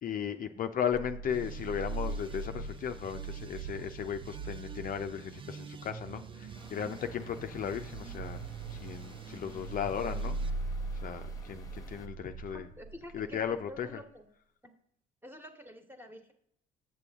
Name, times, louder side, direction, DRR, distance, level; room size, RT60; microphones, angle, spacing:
voice 1, 0.0-8.4 8.7-10.4 10.9-12.7 13.1-14.0, left 8 dB, 50° left, 7 dB, 0.5 m, -36 dB
sound 1, 0.9-13.5, right 3 dB, 75° right, 0.5 m, -41 dB
sound 2, 1.3-10.5, right 6 dB, 25° right, 0.5 m, -48 dB
sound 3, 6.5-12.1, left 3 dB, 20° left, 1.1 m, -54 dB
voice 2, 12.5-13.4 13.7-14.3 14.6-14.7 15.2-16.3, equal, 10° right, 5 dB, 1.3 m, -48 dB
7.6 x 6.8 x 3.5 m, 0.69 s
supercardioid pair, 75°, 19 cm